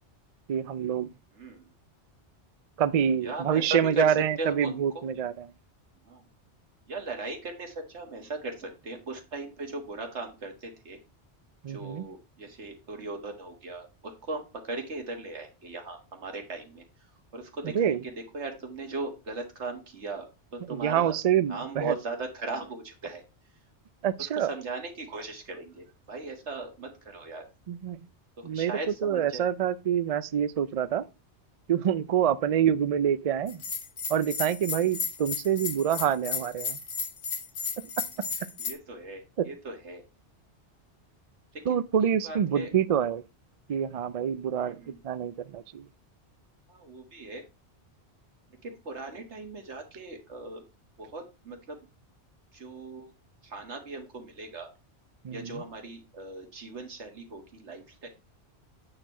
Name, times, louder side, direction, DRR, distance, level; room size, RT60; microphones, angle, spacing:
voice 1, 0.5-1.1 2.8-5.3 11.6-12.0 17.7-18.0 20.7-21.9 24.0-24.5 27.7-28.0 28.4-28.7 29.0-31.0 31.7-33.6 34.1-36.8 41.7-43.2 43.7-44.8 45.0-45.8 55.2-55.6, right 9 dB, 55° right, 0.4 m, -26 dB
voice 2, 1.3-1.7 3.2-5.0 6.1-6.2 6.9-11.0 11.7-16.8 17.3-23.2 24.2-27.5 28.4-29.5 32.5-32.6 38.6-40.0 41.5-42.7 44.6-45.0 46.7-47.4 48.6-50.6 51.0-51.8 52.5-53.1 53.4-54.7 55.3-58.1, right 2 dB, 75° right, 1.9 m, -38 dB
Bell, 33.5-38.7, left 5 dB, 85° left, 1.6 m, -34 dB
8.7 x 4.6 x 4.3 m
omnidirectional pair, 1.2 m